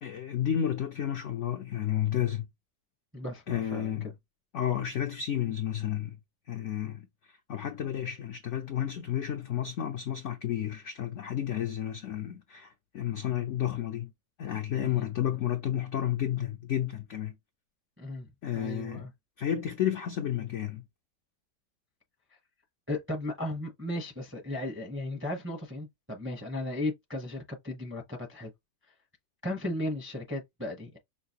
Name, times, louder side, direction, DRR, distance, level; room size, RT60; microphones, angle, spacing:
voice 1, 0.0-2.5 3.5-4.1 4.5-6.2 6.5-7.1 7.5-14.1 14.4-17.3 18.4-19.1 19.4-20.8, left 10 dB, 75° left, 0.7 m, -31 dB
voice 2, 3.1-4.1 14.8-15.1 18.0-18.3 18.5-19.1 22.9-28.5 29.4-31.0, left 1 dB, 10° right, 0.5 m, -36 dB
5.7 x 2.4 x 2.9 m
omnidirectional pair, 1.9 m